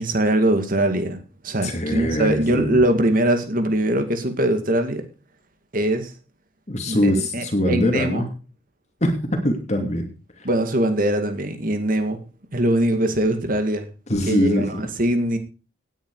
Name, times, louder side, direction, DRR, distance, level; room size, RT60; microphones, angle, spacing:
voice 1, 0.0-5.0 5.7-6.1 6.9-8.2 10.4-12.2 12.5-13.9 14.3-15.4, right 1 dB, 45° right, 7 dB, 2.3 m, -22 dB
voice 2, 1.6-2.8 6.7-8.3 9.0-10.1 10.4-10.5 14.1-14.8, equal, 35° left, 4 dB, 2.6 m, -23 dB
18.0 x 9.7 x 4.9 m, 0.35 s
head